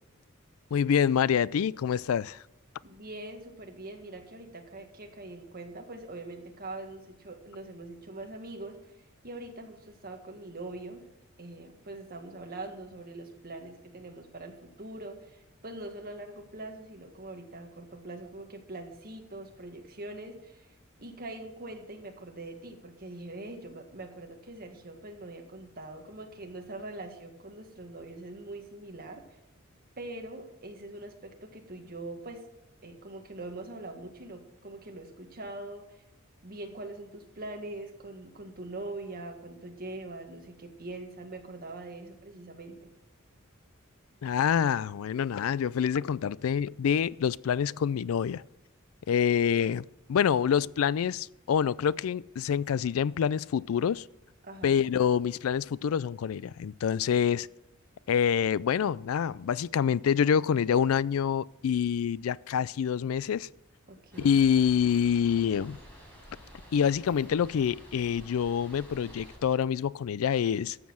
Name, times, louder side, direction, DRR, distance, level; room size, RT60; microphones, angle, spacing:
voice 1, 0.7-2.4 44.2-48.4 49.1-54.0 54.6-57.5 58.1-63.5 64.2-65.8 66.7-70.8, left 8 dB, 85° left, 0.4 m, -26 dB
voice 2, 2.8-8.8 9.2-11.1 11.4-20.7 21.0-29.2 30.0-32.5 32.8-35.8 36.4-42.9 54.4-54.8 63.9-64.4, right 2 dB, 45° right, 1.7 m, -43 dB
sound 1, 64.1-69.4, equal, 5° left, 4.9 m, -50 dB
12.5 x 7.5 x 6.2 m
head